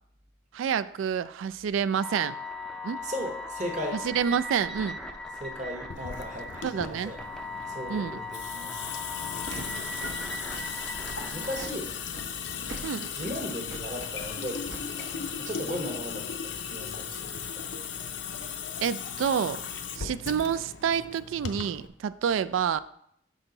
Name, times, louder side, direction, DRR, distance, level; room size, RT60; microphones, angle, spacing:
voice 1, 0.5-2.4 2.8-3.0 3.9-5.0 6.6-7.1 7.9-8.2 12.8-13.1 18.8-19.6 19.9-22.8, right 7 dB, 85° right, 15 dB, 0.3 m, -28 dB
sound 1, 2.0-11.7, left 2 dB, 5° left, 0.4 m, -38 dB
voice 2, 3.0-4.0 5.4-7.2 7.7-9.0 11.3-11.9 13.1-17.7, equal, 35° right, 1 dB, 1.0 m, -37 dB
Water tap faucet / Sink (filling or washing) / Drip, 5.9-21.9, left 7 dB, 65° left, 0.5 m, -37 dB
Walk footsteps, 9.4-16.1, right 2 dB, 70° right, 1.0 m, -46 dB
6.2 x 5.4 x 3.9 m, 0.69 s
head